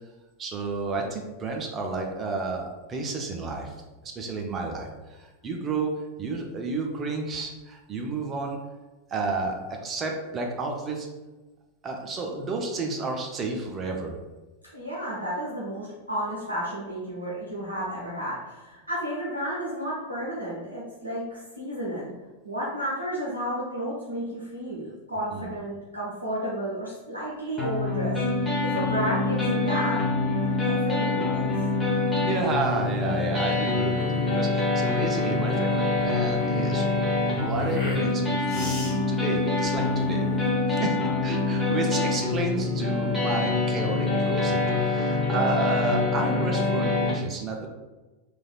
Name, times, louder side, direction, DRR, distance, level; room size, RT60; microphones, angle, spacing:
voice 1, 0.4-3.7 4.0-8.6 9.1-11.1 11.8-14.2 25.3-25.5 32.1-36.9 37.3-40.3 40.7-47.7, right 3 dB, 25° right, 1 dB, 0.5 m, -31 dB
voice 2, 14.7-22.1 22.4-28.2 28.6-30.0 30.4-31.5, equal, 85° right, -6 dB, 0.5 m, -32 dB
sound 1, 27.6-47.1, left 3 dB, 10° left, 1.0 m, -25 dB
sound 2, 32.5-40.5, left 1 dB, 25° left, 1.4 m, -39 dB
3.2 x 2.4 x 2.3 m, 1.2 s
figure-of-eight pair, 90°, 0 cm